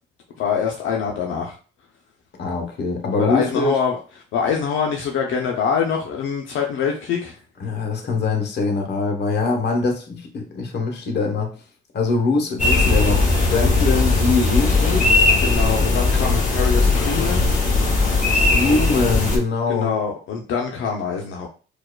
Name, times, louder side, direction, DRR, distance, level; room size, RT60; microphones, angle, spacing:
voice 1, 0.4-1.6 3.2-4.0 4.3-7.4 15.4-17.5 18.7-18.8 19.7-21.5, left 6 dB, 85° left, 0.7 m, -24 dB
voice 2, 2.4-3.8 7.6-11.6 11.9-15.1 18.3-19.9, left 3 dB, 60° left, 1.0 m, -23 dB
sound 1, 12.6-19.4, left 3 dB, 40° left, 1.2 m, -18 dB
4.6 x 2.4 x 2.2 m
cardioid pair, 90°, 20 cm